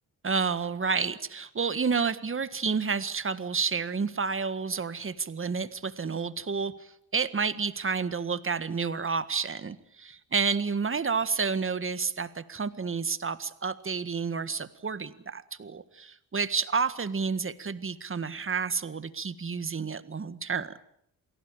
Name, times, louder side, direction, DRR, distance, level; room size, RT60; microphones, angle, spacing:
voice 1, 0.2-20.8, right 5 dB, 35° right, 13 dB, 1.7 m, -30 dB
28.5 x 18.5 x 8.9 m, 0.71 s
cardioid pair, 80°, 38 cm